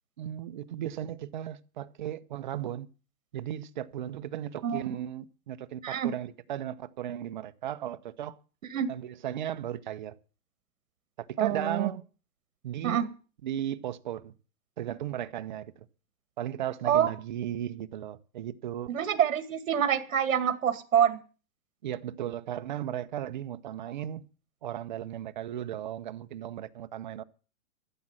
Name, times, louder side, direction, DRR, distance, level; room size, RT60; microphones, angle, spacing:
voice 1, 0.2-2.9 3.3-8.4 8.9-10.2 11.2-12.0 12.6-13.0 13.4-14.3 14.8-15.9 16.4-18.9 21.8-24.2 24.6-27.2, right 11 dB, 35° right, 0.7 m, -36 dB
voice 2, 4.6-5.0 5.8-6.1 8.7-8.9 11.4-11.9 12.8-13.1 16.9-17.1 18.9-21.2, right 9 dB, 65° right, 2.0 m, -26 dB
14.0 x 7.5 x 8.8 m
hypercardioid pair, 165°, 42 cm